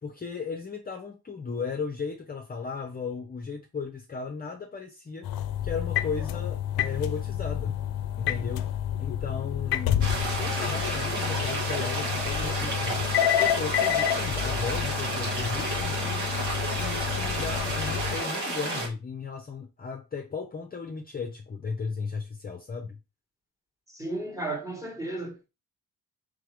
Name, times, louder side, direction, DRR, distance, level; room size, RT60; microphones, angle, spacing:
voice 1, 0.0-5.3 5.6-7.7 8.2-8.7 9.0-10.1 10.3-13.1 13.4-16.3 16.8-23.0, left 5 dB, 25° left, 0.6 m, -35 dB
sound 1, 5.2-18.2, left 11 dB, 70° left, 0.5 m, -29 dB
sound 2, 10.0-18.9, right 2 dB, 85° right, 1.9 m, -31 dB
voice 2, 23.9-25.5, right 2 dB, 10° right, 1.2 m, -34 dB
3.6 x 3.4 x 3.4 m
cardioid pair, 90°, 39 cm